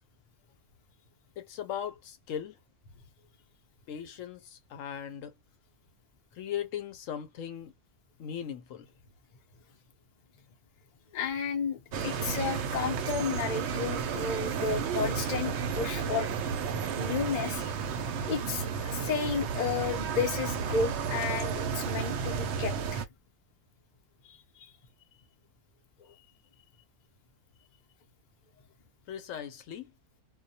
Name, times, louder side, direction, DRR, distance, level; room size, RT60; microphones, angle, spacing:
voice 1, 1.4-2.6 3.9-5.3 6.4-7.7 8.2-8.9 29.1-29.9, left 9 dB, 70° left, 0.9 m, -38 dB
voice 2, 11.1-16.3 17.0-17.7 18.1-23.1 24.2-24.7 26.0-26.1, left 5 dB, 50° left, 0.5 m, -33 dB
sound 1, 11.9-23.0, right 6 dB, 65° right, 0.7 m, -32 dB
2.3 x 2.1 x 2.7 m
omnidirectional pair, 1.5 m